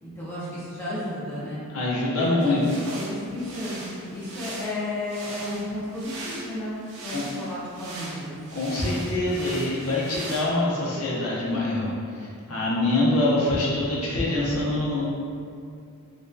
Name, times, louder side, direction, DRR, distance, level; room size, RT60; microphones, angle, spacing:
voice 1, 0.0-1.6 2.2-8.4, left 1 dB, 10° left, -11 dB, 0.5 m, -33 dB
voice 2, 1.7-2.6 7.1-7.2 8.5-11.9 12.5-15.1, left 2 dB, 75° left, -6 dB, 0.6 m, -24 dB
sound 1, 2.4-10.4, right 2 dB, 90° right, 0.5 m, -40 dB
2.6 x 2.3 x 2.3 m, 2.4 s
head